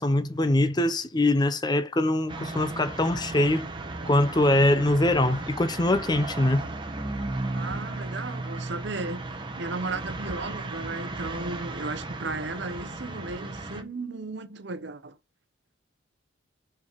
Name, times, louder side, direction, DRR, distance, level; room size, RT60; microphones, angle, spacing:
voice 1, 0.0-3.7 4.0-6.7, left 1 dB, 20° left, 0.6 m, -23 dB
sound 1, 2.3-13.8, right 2 dB, 25° right, 1.0 m, -35 dB
voice 2, 7.5-15.2, right 3 dB, 60° right, 0.8 m, -35 dB
6.0 x 4.6 x 4.5 m
head